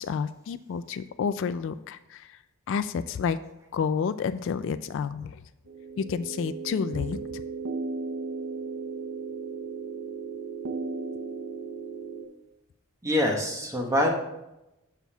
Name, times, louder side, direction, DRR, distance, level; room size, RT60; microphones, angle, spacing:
voice 1, 0.0-2.3 2.7-3.4 3.7-5.4 6.0-7.2, left 6 dB, 60° left, 12 dB, 0.3 m, -30 dB
sound 1, 5.7-12.2, right 4 dB, 75° right, 0.7 m, -35 dB
voice 2, 13.0-14.1, left 1 dB, 15° right, 0 dB, 1.2 m, -25 dB
14.0 x 5.9 x 2.3 m, 0.93 s
head